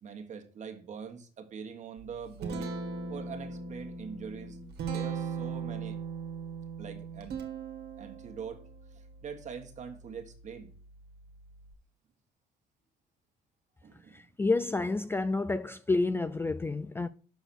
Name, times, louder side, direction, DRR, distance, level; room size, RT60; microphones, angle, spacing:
voice 1, 0.0-2.8 3.1-4.6 4.9-6.0 6.8-7.4 8.0-8.6 8.9-10.7 13.8-14.2, right 6 dB, 45° right, 1.6 m, -43 dB
Guitar, 2.0-11.7, right 5 dB, 70° right, 1.7 m, -40 dB
voice 2, 14.1-17.1, left 3 dB, 15° left, 0.3 m, -29 dB
6.9 x 4.8 x 6.0 m
cardioid pair, 110°, 17 cm